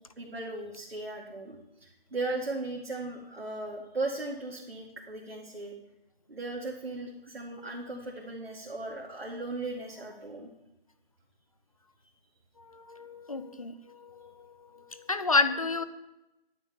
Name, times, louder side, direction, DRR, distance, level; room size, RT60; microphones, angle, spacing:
voice 1, 0.0-5.7 6.3-10.5, right 2 dB, 80° right, -2 dB, 2.3 m, -37 dB
voice 2, 12.9-13.7 14.0-14.3 14.9-15.8, left 3 dB, 35° left, 12 dB, 0.7 m, -29 dB
10.5 x 5.6 x 8.2 m, 0.93 s
figure-of-eight pair, 170°, 30 cm